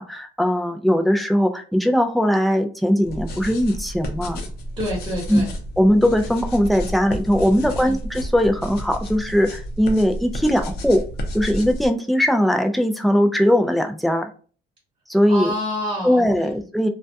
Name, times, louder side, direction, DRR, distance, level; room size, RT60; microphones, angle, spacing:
voice 1, 0.0-4.4 5.3-5.4 5.8-11.0 11.3-14.3 15.1-15.5 16.0-16.9, equal, ahead, 5 dB, 0.3 m, -19 dB
sound 1, 3.0-11.9, equal, 70° left, 0.6 m, -31 dB
voice 2, 4.8-5.5 7.8-7.9 15.3-16.6, equal, 30° right, -5 dB, 1.1 m, -28 dB
2.2 x 2.2 x 2.6 m, 0.40 s
cardioid pair, 110°, 17 cm